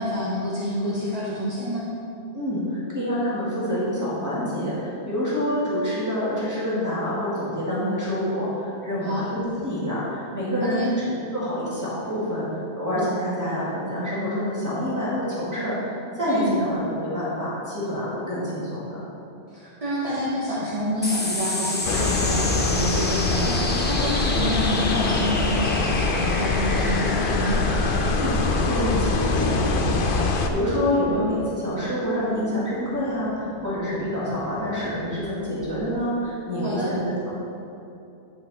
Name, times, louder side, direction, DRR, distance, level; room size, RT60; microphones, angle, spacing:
voice 1, 0.0-1.9 9.0-9.3 10.6-10.9 16.3-16.6 19.5-27.6 36.6-36.9, equal, 35° right, -8 dB, 1.2 m, -28 dB
voice 2, 2.3-19.0 28.1-37.3, equal, 15° right, -10 dB, 2.0 m, -27 dB
sound 1, 21.0-35.8, left 1 dB, 10° left, 0.5 m, -33 dB
sound 2, 21.8-30.5, left 3 dB, 60° left, 0.7 m, -24 dB
10.0 x 5.2 x 4.2 m, 2.8 s
omnidirectional pair, 1.1 m